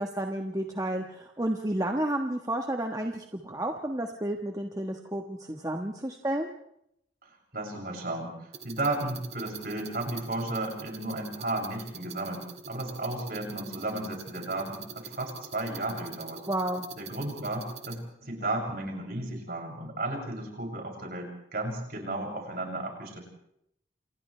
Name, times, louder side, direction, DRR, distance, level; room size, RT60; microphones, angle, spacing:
voice 1, 0.0-6.5 16.5-16.9, right 1 dB, 20° right, 3 dB, 1.3 m, -31 dB
voice 2, 7.2-16.4 17.0-23.2, right 2 dB, 55° right, 0 dB, 7.1 m, -34 dB
sound 1, 8.5-18.0, right 5 dB, 35° right, 1.9 m, -45 dB
29.5 x 28.0 x 3.3 m, 0.75 s
head